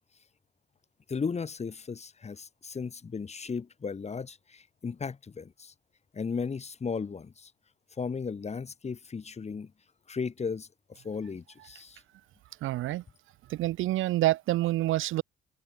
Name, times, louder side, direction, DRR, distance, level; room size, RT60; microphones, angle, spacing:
voice 1, 1.1-5.7 6.1-7.5 8.0-9.7 10.1-12.0, left 5 dB, 35° left, 1.9 m, -35 dB
voice 2, 12.6-13.0 13.5-15.2, right 16 dB, 85° right, 1.1 m, -27 dB
cardioid pair, 90°, 20 cm